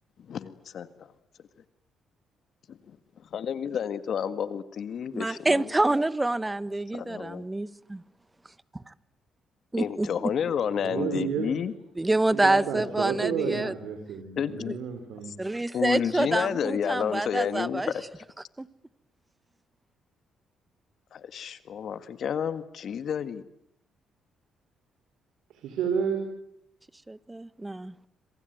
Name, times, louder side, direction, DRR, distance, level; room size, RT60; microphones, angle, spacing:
voice 1, 0.3-0.9 2.7-2.9 3.3-5.7 6.9-7.4 9.8-11.7 14.4-14.7 15.7-18.0 21.1-23.4, left 8 dB, 60° left, 1.8 m, -30 dB
voice 2, 5.1-8.0 8.7-8.9 9.7-10.3 12.0-13.7 14.7-14.8 15.4-17.9 18.6-18.7 27.1-27.9, right 2 dB, 15° right, 1.2 m, -27 dB
voice 3, 10.8-11.5 12.3-15.4 25.5-26.2, right 7 dB, 85° right, 4.5 m, -31 dB
26.5 x 23.5 x 9.3 m
cardioid pair, 90°, 0 cm